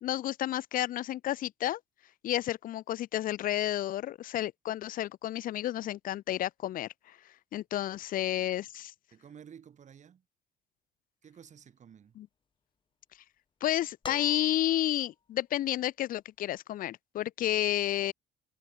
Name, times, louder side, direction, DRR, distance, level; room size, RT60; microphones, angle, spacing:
voice 1, 0.0-1.8 2.2-7.2 7.5-8.9 12.2-12.3 13.6-18.1, left 13 dB, 55° left, 0.5 m, -31 dB
voice 2, 9.1-10.2 11.2-12.2, right 8 dB, 45° right, 7.0 m, -53 dB
sound 1, 14.0-15.1 16.6-16.7, left 5 dB, 30° left, 1.7 m, -44 dB
cardioid pair, 110°, 17 cm